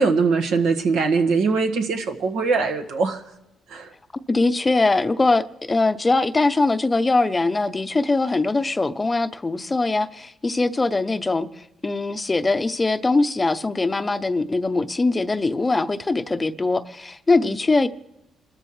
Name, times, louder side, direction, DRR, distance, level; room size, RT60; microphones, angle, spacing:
voice 1, 0.0-3.2 3.7-3.9 17.4-17.5, right 4 dB, 85° right, 1.5 m, -21 dB
voice 2, 4.1-17.9, left 3 dB, 20° left, 0.7 m, -22 dB
28.5 x 13.5 x 3.2 m
cardioid pair, 90°, 0 cm